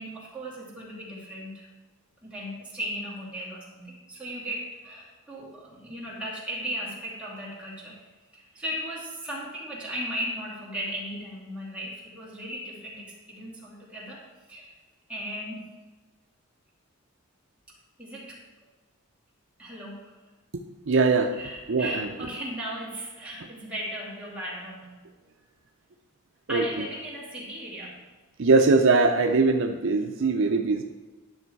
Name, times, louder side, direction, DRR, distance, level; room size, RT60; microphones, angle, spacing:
voice 1, 0.0-1.7 2.2-8.0 8.3-14.2 14.5-14.7 15.1-15.7 18.0-18.4 19.6-20.1 21.3-24.9 26.5-28.0, equal, 5° right, -7 dB, 2.4 m, -36 dB
voice 2, 20.9-21.3 21.7-22.1 26.5-26.6 28.4-30.8, right 3 dB, 60° right, 4 dB, 0.6 m, -21 dB
11.0 x 6.2 x 4.6 m, 1.3 s
head